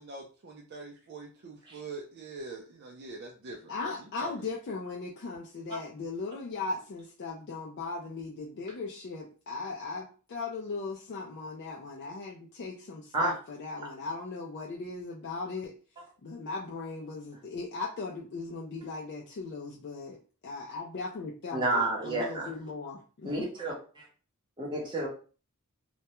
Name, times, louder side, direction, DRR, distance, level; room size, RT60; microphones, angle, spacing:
voice 1, 0.0-4.5, right 2 dB, 50° right, -1 dB, 0.4 m, -44 dB
voice 2, 3.7-15.7 16.2-23.5, left 3 dB, 50° left, -2 dB, 0.4 m, -38 dB
voice 3, 21.5-22.5 23.2-24.1 24.6-25.1, right 2 dB, 20° right, -3 dB, 0.8 m, -30 dB
2.2 x 2.1 x 2.8 m, 0.38 s
head